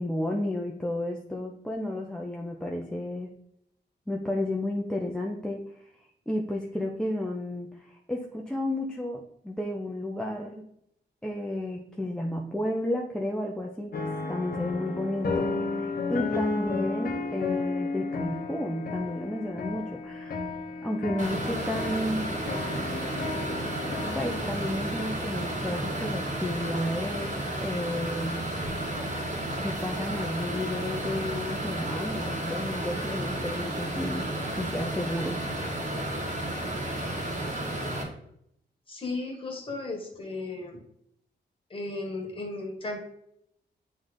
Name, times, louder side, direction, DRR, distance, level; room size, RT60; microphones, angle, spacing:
voice 1, 0.0-3.3 4.1-5.9 6.3-10.7 11.2-20.5 20.8-22.4 24.1-28.5 29.6-35.8, left 1 dB, 5° left, 0 dB, 0.6 m, -32 dB
sound 1, 13.9-24.5, left 3 dB, 55° left, 1.0 m, -33 dB
sound 2, 21.2-38.0, right 1 dB, 40° right, 1.8 m, -32 dB
voice 2, 38.9-40.8 41.7-43.1, left 2 dB, 30° left, 0 dB, 1.8 m, -35 dB
9.1 x 3.4 x 3.9 m, 0.73 s
wide cardioid pair, 150°, 18 cm